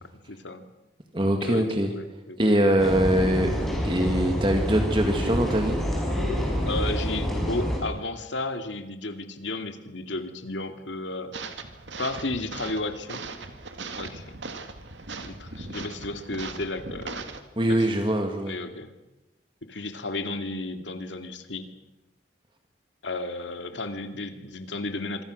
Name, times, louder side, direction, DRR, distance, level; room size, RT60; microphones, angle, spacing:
voice 1, 0.0-0.6 1.4-2.5 2.8-2.9 6.6-11.4 12.0-13.2 14.0-14.4 15.2-17.3 17.7-17.9 18.5-18.9 19.6-21.7 23.0-25.2, left 2 dB, 85° left, 7 dB, 2.4 m, -33 dB
voice 2, 1.1-1.9 2.4-3.5 3.8-5.8 17.6-18.5, right 1 dB, 25° right, 4 dB, 1.9 m, -23 dB
sound 1, 2.8-7.8, equal, ahead, 5.7 m, -27 dB
sound 2, 11.3-17.4, right 3 dB, 85° right, 2.3 m, -39 dB
26.5 x 24.0 x 6.5 m, 0.99 s
head